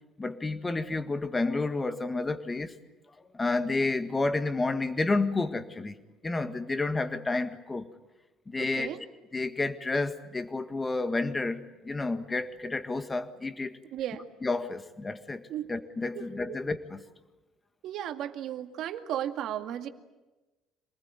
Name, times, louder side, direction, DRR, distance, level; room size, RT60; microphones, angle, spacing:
voice 1, 0.2-2.7 3.3-5.9 6.2-7.9 8.5-8.9 9.3-13.8 14.4-15.4 15.7-17.0, left 3 dB, 15° left, 1.8 m, -30 dB
voice 2, 8.6-9.0 13.9-14.3 15.5-15.7 16.1-16.6 17.8-19.9, right 11 dB, 60° right, 2.1 m, -35 dB
27.0 x 20.0 x 9.7 m
cardioid pair, 145°, 0 cm